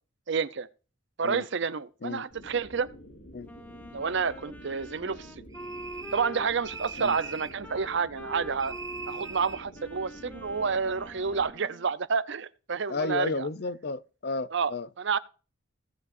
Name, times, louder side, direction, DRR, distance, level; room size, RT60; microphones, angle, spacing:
voice 1, 0.3-0.7 1.2-2.9 3.9-5.4 6.1-8.7 9.1-13.5 14.5-14.7 15.0-15.2, right 5 dB, 60° right, 0.6 m, -29 dB
sound 1, 2.3-11.5, equal, 75° left, 3.3 m, -49 dB
Wind instrument woodwind instrument, 3.5-11.9, equal, 10° left, 0.9 m, -45 dB
sound 2, 5.5-6.3 6.6-7.6 8.6-9.6, right 5 dB, 15° right, 0.4 m, -41 dB
voice 2, 12.9-14.9, left 3 dB, 50° left, 0.6 m, -32 dB
17.0 x 8.1 x 2.6 m
head